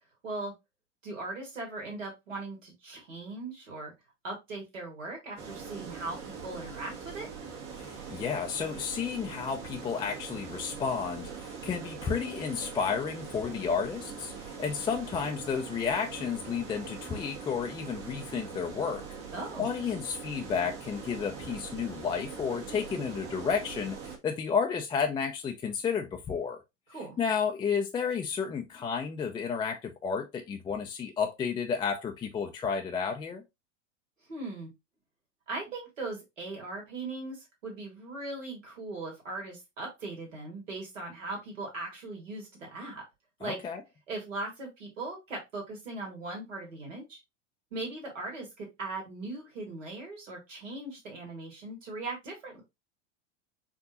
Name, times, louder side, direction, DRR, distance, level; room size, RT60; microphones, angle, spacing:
voice 1, 1.0-3.9 4.2-7.3 19.3-19.7 26.9-27.2 34.3-34.7 35.5-43.0 43.4-43.6 44.1-47.2 47.7-52.6, right 2 dB, 85° right, 1.9 m, -39 dB
sound 1, 5.4-24.2, right 6 dB, 60° right, 1.4 m, -42 dB
voice 2, 7.8-19.0 19.6-26.6 27.2-33.4 43.4-43.8, left 6 dB, 15° left, 0.3 m, -32 dB
4.6 x 2.6 x 2.7 m
hypercardioid pair, 90°, 37 cm